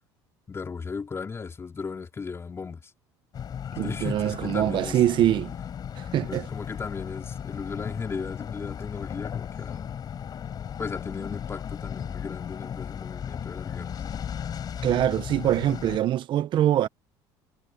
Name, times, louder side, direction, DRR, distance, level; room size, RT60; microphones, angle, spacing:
voice 1, 0.5-2.9 3.8-5.0 6.3-9.9 10.8-14.0, left 5 dB, 25° left, 4.3 m, -36 dB
sound 1, 3.3-16.0, left 8 dB, 40° left, 6.2 m, -36 dB
voice 2, 3.8-5.5 6.0-6.5 14.8-16.9, right 12 dB, 50° right, 1.1 m, -24 dB
supercardioid pair, 100°, 10 cm